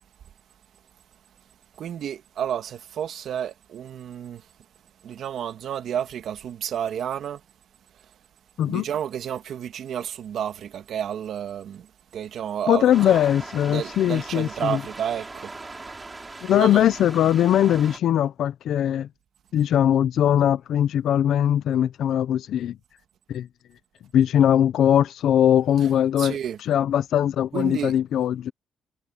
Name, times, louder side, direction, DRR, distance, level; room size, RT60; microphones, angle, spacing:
voice 1, 1.8-4.4 5.0-7.4 8.6-11.9 12.1-13.2 13.7-15.5 16.5-16.9 26.2-26.6 27.5-28.0, right 9 dB, 70° right, 1.9 m, -31 dB
voice 2, 12.7-14.8 16.4-19.1 19.5-22.8 23.3-23.5 24.1-28.5, left 10 dB, 75° left, 0.9 m, -21 dB
sound 1, 12.9-18.0, right 3 dB, 20° right, 5.2 m, -39 dB
cardioid pair, 90°, 0 cm